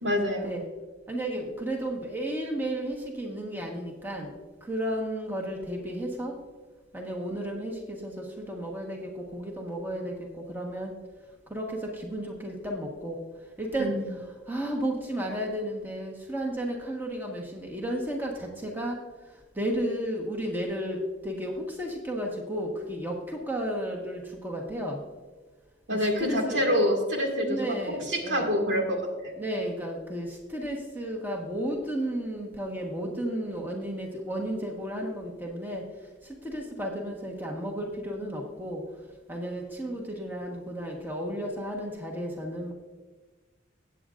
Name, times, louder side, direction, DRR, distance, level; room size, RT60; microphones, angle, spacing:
voice 1, 0.0-0.6 13.8-14.1 25.9-27.6 28.1-29.3, equal, 75° right, 1 dB, 2.0 m, -26 dB
voice 2, 1.1-6.4 6.9-10.9 11.5-13.2 13.6-13.9 14.5-19.0 19.5-25.0 25.9-26.6 27.4-28.5 29.4-35.8 36.2-38.8 39.3-42.7, right 1 dB, 10° right, 0 dB, 1.2 m, -33 dB
16.5 x 8.3 x 2.5 m, 1.3 s
head